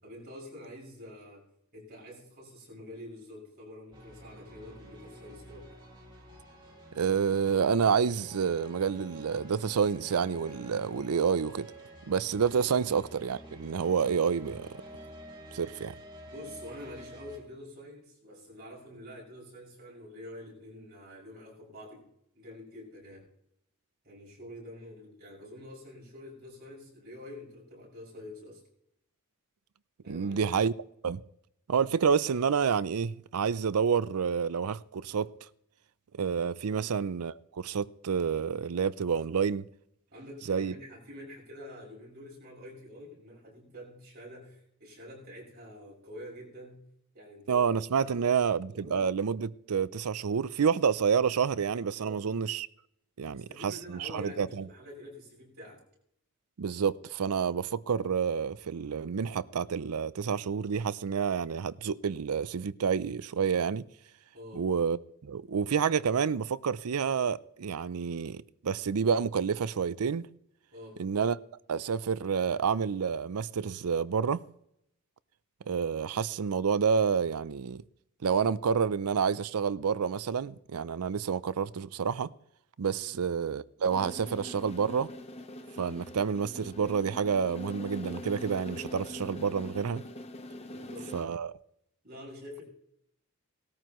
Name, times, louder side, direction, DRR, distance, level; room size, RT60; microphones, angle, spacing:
voice 1, 0.0-5.7 16.3-22.1 22.3-23.3 24.0-28.6 30.0-30.6 36.7-36.9 40.1-46.8 47.1-47.7 48.0-49.0 52.0-52.2 53.2-55.8 64.3-64.6 70.7-71.0 83.0-83.2 90.6-91.1 92.0-92.6, left 1 dB, 45° right, 6.3 m, -47 dB
sound 1, 3.9-17.4, equal, 20° right, 3.0 m, -49 dB
voice 2, 6.9-11.7 12.1-14.8 15.5-15.9 30.1-30.7 31.0-31.2 31.7-35.3 36.2-39.6 40.5-40.7 47.5-52.7 53.2-54.5 56.6-63.8 64.5-65.0 65.2-70.3 71.0-71.4 71.7-74.4 75.7-77.8 78.2-82.3 82.8-85.1 85.8-90.0 91.1-91.5, right 6 dB, 85° right, 0.5 m, -29 dB
sound 2, 83.9-91.2, left 1 dB, 30° left, 0.9 m, -43 dB
19.0 x 14.0 x 3.1 m
head